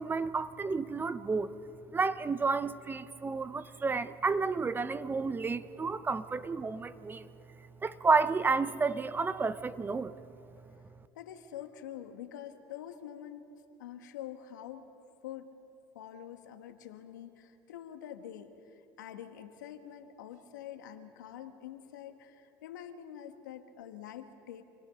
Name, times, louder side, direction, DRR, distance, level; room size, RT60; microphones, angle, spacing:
voice 1, 0.0-1.5 1.9-7.3 7.8-10.1, right 4 dB, 20° right, 13 dB, 0.8 m, -31 dB
voice 2, 11.1-13.5 13.8-14.9 15.2-15.5 15.9-24.6, left 10 dB, 90° left, 7 dB, 1.5 m, -46 dB
27.5 x 18.0 x 5.8 m, 2.8 s
hypercardioid pair, 90°, 10 cm